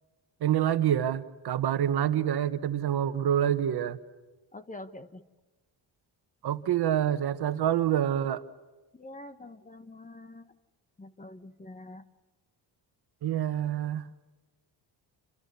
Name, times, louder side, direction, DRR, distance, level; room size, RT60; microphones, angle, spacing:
voice 1, 0.4-4.0 6.4-8.4 13.2-14.1, right 10 dB, 55° right, 11 dB, 1.4 m, -27 dB
voice 2, 4.5-5.2 8.9-10.5 11.0-12.0, left 2 dB, 15° left, 11 dB, 1.4 m, -45 dB
28.5 x 27.5 x 7.0 m, 1.2 s
cardioid pair, 160°, 45 cm